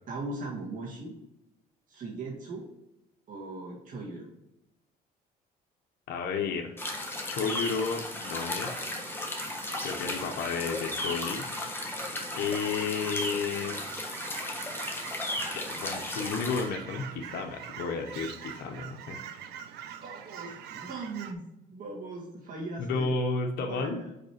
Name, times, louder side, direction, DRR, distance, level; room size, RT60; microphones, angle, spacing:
voice 1, 0.1-1.2 1.9-2.7 3.3-4.3 20.0-23.1 23.6-24.1, right 3 dB, 50° right, -3 dB, 2.1 m, -39 dB
voice 2, 6.1-6.7 7.3-8.8 9.8-11.4 12.3-13.8 15.4-19.2 22.8-24.0, left 5 dB, 70° left, 2 dB, 0.9 m, -32 dB
Fowl / Chirp tweet, 6.6-21.3, right 9 dB, 85° right, 0.7 m, -45 dB
sound 1, 6.8-16.7, left 1 dB, 15° left, 1.3 m, -35 dB
5.2 x 5.1 x 4.7 m, 0.91 s
cardioid pair, 110°, 17 cm